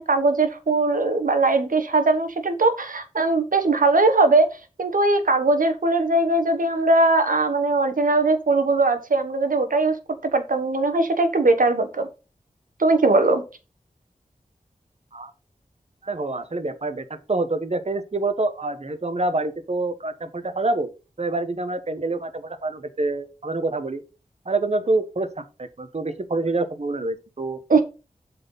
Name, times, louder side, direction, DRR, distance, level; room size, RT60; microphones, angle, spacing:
voice 1, 0.0-4.5 4.8-9.9 10.3-12.1 12.8-13.4 27.7-27.8, right 2 dB, 80° right, 8 dB, 1.3 m, -20 dB
voice 2, 16.0-20.9 21.2-24.0 24.4-27.6, right 2 dB, 50° right, 9 dB, 1.3 m, -26 dB
7.5 x 4.5 x 5.5 m, 0.31 s
wide cardioid pair, 50°, 14 cm